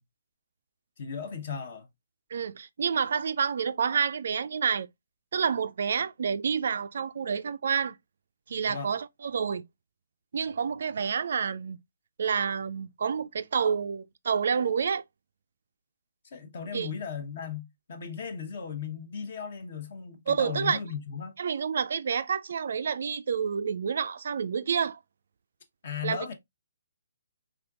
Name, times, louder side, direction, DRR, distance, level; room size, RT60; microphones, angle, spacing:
voice 1, 1.0-1.9 8.7-8.9 16.2-21.3 25.8-26.3, left 6 dB, 45° left, 0.9 m, -36 dB
voice 2, 2.3-4.9 5.3-7.9 8.5-9.6 10.3-11.8 12.2-15.0 16.7-16.9 20.3-20.8 21.4-25.0 26.0-26.2, right 6 dB, 55° right, 0.3 m, -28 dB
3.8 x 3.5 x 2.4 m
figure-of-eight pair, 135°, 0 cm